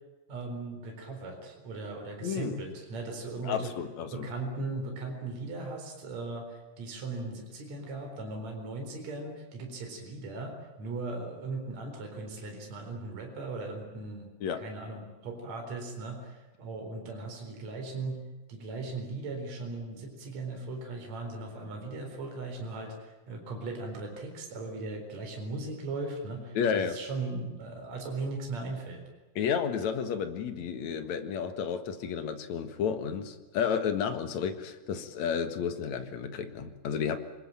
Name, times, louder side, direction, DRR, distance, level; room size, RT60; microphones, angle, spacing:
voice 1, 0.3-3.7 4.1-14.3 14.6-18.2 18.5-29.0, right 3 dB, 50° right, 2 dB, 5.3 m, -38 dB
voice 2, 2.2-2.6 3.4-4.3 14.4-14.6 26.5-27.0 29.4-37.2, left 7 dB, 55° left, 8 dB, 2.7 m, -31 dB
26.5 x 21.0 x 9.0 m, 1.2 s
omnidirectional pair, 4.1 m